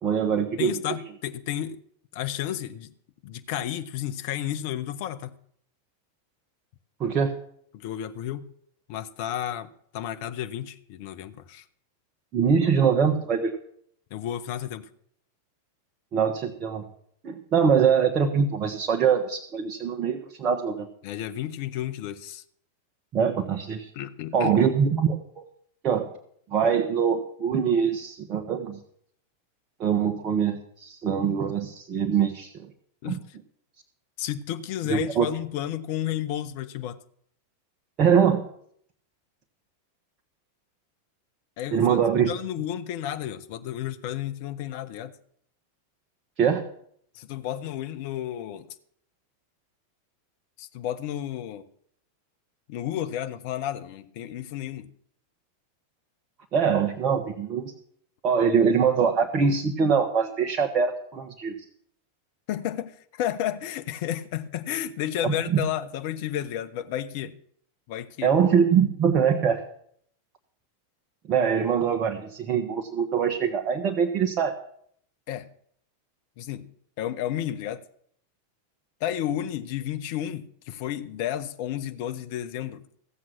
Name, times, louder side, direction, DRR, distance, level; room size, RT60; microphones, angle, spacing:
voice 1, 0.0-0.7 7.0-7.3 12.3-13.6 16.1-16.9 17.2-20.9 23.1-23.9 24.3-25.5 25.8-26.1 26.5-28.8 29.8-32.7 33.0-33.2 34.9-35.3 38.0-38.5 41.7-42.3 46.4-46.7 56.5-57.7 58.2-61.6 65.2-65.6 68.2-69.6 71.3-74.5, right 7 dB, 35° right, 1.1 m, -23 dB
voice 2, 0.6-1.8 2.1-2.9 3.2-5.3 7.7-8.5 8.9-11.6 14.1-14.9 21.0-22.4 23.9-24.6 33.0-33.2 34.2-37.0 41.6-42.0 42.2-45.1 47.1-48.7 50.6-51.7 52.7-54.9 62.5-67.4 67.9-68.3 75.3-75.5 76.4-77.8 79.0-82.8, left 11 dB, 50° left, 0.8 m, -32 dB
15.5 x 7.6 x 6.0 m
figure-of-eight pair, 90°, 0 cm